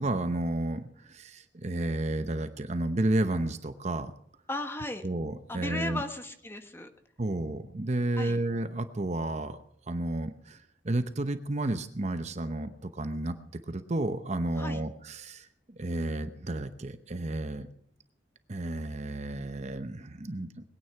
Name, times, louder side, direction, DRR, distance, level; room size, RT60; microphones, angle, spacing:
voice 1, 0.0-4.1 5.0-6.0 7.2-9.6 9.9-10.6 10.8-13.4 13.7-17.7 18.5-20.5, right 2 dB, 35° right, 10 dB, 0.8 m, -31 dB
voice 2, 4.5-5.1 5.5-6.9 8.2-8.4 14.6-14.8, left 2 dB, 15° left, 6 dB, 1.3 m, -36 dB
21.0 x 9.5 x 5.8 m, 0.69 s
head